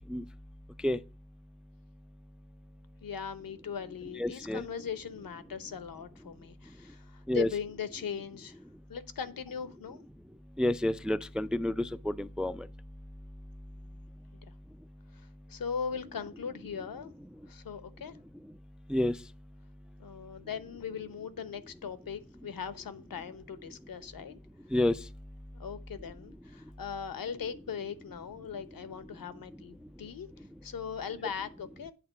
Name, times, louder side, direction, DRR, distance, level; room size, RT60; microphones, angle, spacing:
voice 1, 3.0-8.6 8.9-10.0 15.1-17.1 17.5-18.2 20.0-24.3 25.5-31.9, left 7 dB, 75° left, 0.9 m, -39 dB
voice 2, 4.2-4.6 7.3-7.5 10.6-12.7 18.9-19.2 24.7-25.0, left 1 dB, 5° right, 0.3 m, -29 dB
8.6 x 3.6 x 6.7 m
cardioid pair, 65°, 35 cm